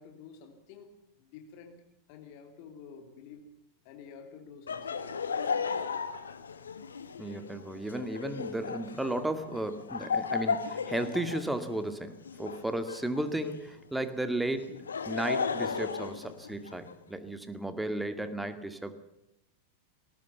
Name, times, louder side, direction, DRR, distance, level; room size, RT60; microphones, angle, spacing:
voice 1, 0.0-1.8 2.1-3.5 3.8-5.0, left 6 dB, 45° left, 4 dB, 2.9 m, -50 dB
Laughter, 4.7-13.7 14.6-16.9, left 5 dB, 70° left, 1.6 m, -35 dB
voice 2, 7.2-18.9, right 1 dB, 5° right, 9 dB, 2.1 m, -34 dB
19.5 x 19.0 x 7.1 m, 0.85 s
figure-of-eight pair, 90°, 0 cm